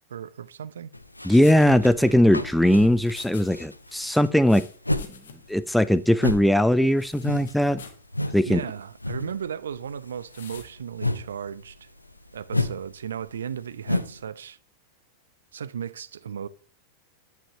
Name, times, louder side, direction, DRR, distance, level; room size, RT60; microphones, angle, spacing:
voice 1, 0.1-0.9 8.5-11.9 12.3-14.6 15.5-16.5, right 8 dB, 65° right, 0.4 m, -35 dB
sound 1, 0.9-5.2 5.4-8.5 8.7-9.4 9.7-14.2, left 2 dB, 85° left, 0.5 m, -31 dB
voice 2, 1.2-4.7 5.5-7.8 8.3-8.6, left 1 dB, ahead, 0.3 m, -19 dB
sound 2, 1.4-3.5 3.8-5.6 5.8-5.9 7.0-8.1 8.6-8.8 10.3-10.7, left 6 dB, 65° left, 1.0 m, -47 dB
9.6 x 5.7 x 2.9 m
figure-of-eight pair, 90°, 0 cm